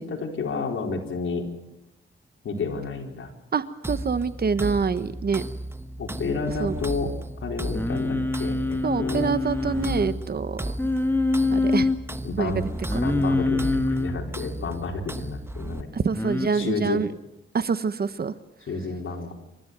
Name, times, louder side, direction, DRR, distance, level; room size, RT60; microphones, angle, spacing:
voice 1, 0.0-1.5 2.4-3.3 6.0-7.1 7.4-9.4 12.2-12.6 13.0-16.1 16.5-17.0 18.7-19.3, left 4 dB, 75° left, 2 dB, 4.3 m, -30 dB
voice 2, 3.5-5.4 6.6-6.7 8.8-10.7 11.5-11.9 12.4-12.5 12.9-13.0 15.9-17.1 17.5-18.3, right 5 dB, 50° right, 13 dB, 1.2 m, -26 dB
sound 1, 3.8-15.8, right 1 dB, 10° right, 1.1 m, -34 dB
Singing, 7.7-10.2 10.8-12.0 12.9-14.2 16.1-16.5, left 2 dB, 10° left, 2.0 m, -25 dB
28.5 x 14.0 x 9.4 m, 0.93 s
cardioid pair, 100°, 21 cm